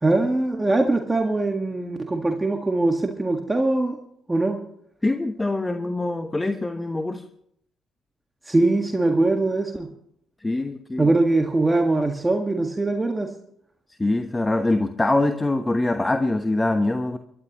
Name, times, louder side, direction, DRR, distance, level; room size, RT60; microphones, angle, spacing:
voice 1, 0.0-4.0 4.3-4.6 8.5-9.9 11.0-13.3, right 2 dB, 20° right, 4 dB, 1.8 m, -22 dB
voice 2, 5.0-7.2 10.4-11.1 14.0-17.2, left 2 dB, 20° left, 8 dB, 1.2 m, -24 dB
24.0 x 12.5 x 3.1 m, 0.70 s
hypercardioid pair, 45°, 0 cm